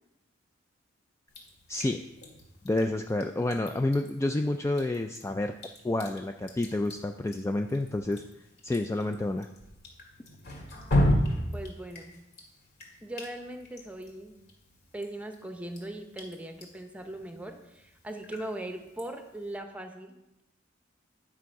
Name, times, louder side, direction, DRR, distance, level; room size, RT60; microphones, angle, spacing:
Drip, 1.3-19.6, left 1 dB, 55° left, 2.2 m, -36 dB
voice 1, 1.7-2.0 2.6-5.6 5.8-8.2 8.6-9.5, left 2 dB, 15° left, 5 dB, 0.3 m, -29 dB
voice 2, 11.5-12.1 13.0-14.3 14.9-20.1, right 1 dB, 5° right, 5 dB, 0.9 m, -39 dB
10.5 x 6.1 x 4.7 m, 0.90 s
head